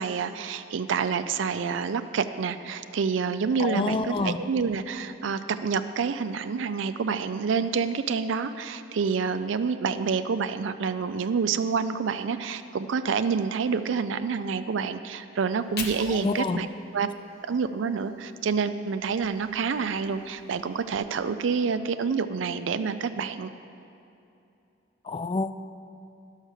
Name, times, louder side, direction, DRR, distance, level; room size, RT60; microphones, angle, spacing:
voice 1, 0.0-16.7 16.9-17.1 17.5-23.5, right 5 dB, 70° right, 10 dB, 0.4 m, -28 dB
voice 2, 3.6-4.4 16.1-16.6 25.1-25.5, left 3 dB, 25° left, 11 dB, 0.3 m, -27 dB
Fire, 15.4-18.5 18.9-21.0, left 4 dB, 55° left, 1.0 m, -44 dB
11.0 x 6.4 x 6.5 m, 2.8 s
head